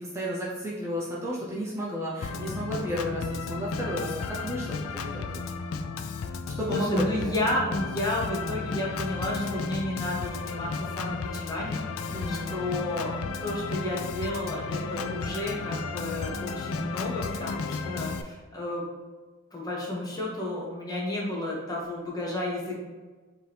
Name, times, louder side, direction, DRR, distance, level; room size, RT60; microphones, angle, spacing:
voice 1, 0.0-4.7 4.9-5.4 6.6-7.3 12.1-12.5, equal, 15° right, -7 dB, 0.6 m, -32 dB
Organ, 2.2-18.2, left 4 dB, 85° left, 0.3 m, -33 dB
voice 2, 6.7-18.8 19.5-22.8, left 1 dB, 20° left, -4 dB, 0.8 m, -32 dB
4.4 x 2.8 x 3.3 m, 1.4 s
head